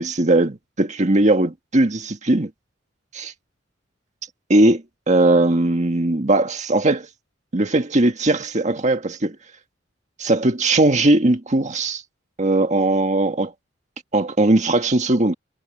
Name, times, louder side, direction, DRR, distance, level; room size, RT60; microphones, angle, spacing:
voice 1, 0.0-2.5 3.1-3.3 4.5-7.1 7.5-9.4 10.2-12.0 12.4-13.5 14.1-15.3, right 2 dB, 40° right, 1.7 m, -19 dB
head